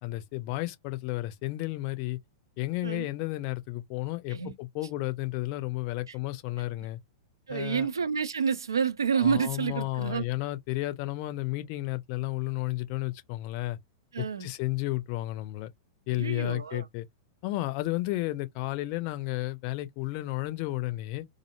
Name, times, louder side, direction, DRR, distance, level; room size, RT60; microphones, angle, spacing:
voice 1, 0.0-2.2 2.6-7.0 7.5-7.9 9.1-13.8 14.2-15.7 16.1-17.1 17.4-21.3, left 18 dB, 45° left, 0.5 m, -32 dB
voice 2, 7.5-10.2 14.1-14.5 16.1-16.8, right 6 dB, 75° right, 0.5 m, -29 dB
2.5 x 2.0 x 2.8 m
figure-of-eight pair, 95°, 2 cm